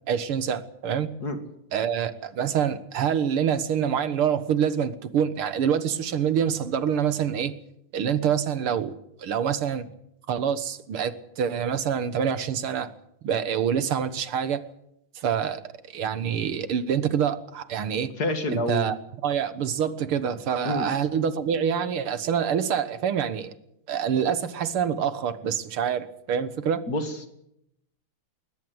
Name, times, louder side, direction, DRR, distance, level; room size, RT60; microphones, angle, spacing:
voice 1, 0.1-1.1 1.7-7.5 7.9-8.9 9.2-9.8 10.3-12.9 13.2-14.6 15.2-15.6 15.9-18.1 18.5-19.0 19.2-23.5 23.9-26.8, right 8 dB, 75° right, 12 dB, 2.2 m, -26 dB
voice 2, 18.2-18.9 20.6-20.9 26.9-27.3, left 2 dB, 45° left, 7 dB, 2.6 m, -28 dB
21.0 x 20.0 x 7.9 m, 0.77 s
omnidirectional pair, 2.4 m